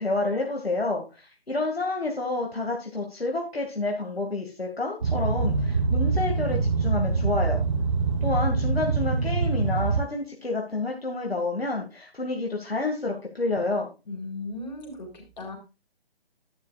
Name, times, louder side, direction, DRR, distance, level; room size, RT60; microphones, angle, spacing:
voice 1, 0.0-7.6 8.2-13.9, left 2 dB, 75° left, 0 dB, 2.2 m, -29 dB
Boat Water vehicle, 5.0-10.0, right 4 dB, 30° right, 0.8 m, -24 dB
voice 2, 14.1-15.6, left 2 dB, 45° left, 2 dB, 3.8 m, -37 dB
11.0 x 10.0 x 2.4 m, 0.28 s
figure-of-eight pair, 145°, 31 cm